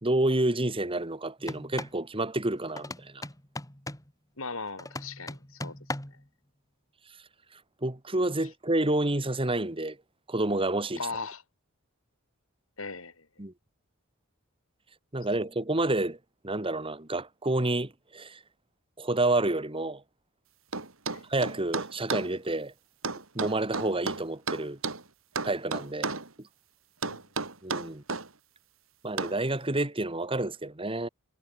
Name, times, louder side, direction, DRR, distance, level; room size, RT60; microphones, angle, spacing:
voice 1, 0.0-3.3 7.8-10.0 10.3-11.0 13.4-13.5 15.1-16.2 16.4-18.4 19.0-20.0 21.3-22.7 23.4-24.8 25.4-26.1 27.6-28.0 29.0-31.1, right 2 dB, 25° right, 1.9 m, -29 dB
sound 1, 1.4-2.0 2.8-4.1 4.8-6.2, left 2 dB, 15° left, 4.2 m, -39 dB
voice 2, 4.4-5.8 10.9-11.4 12.8-13.3 21.1-21.2 27.0-27.2, left 4 dB, 70° left, 6.2 m, -38 dB
sound 2, 20.7-22.3 23.0-25.0 25.4-26.3 27.0-28.3 29.2-29.4, right 4 dB, 65° right, 3.1 m, -33 dB
head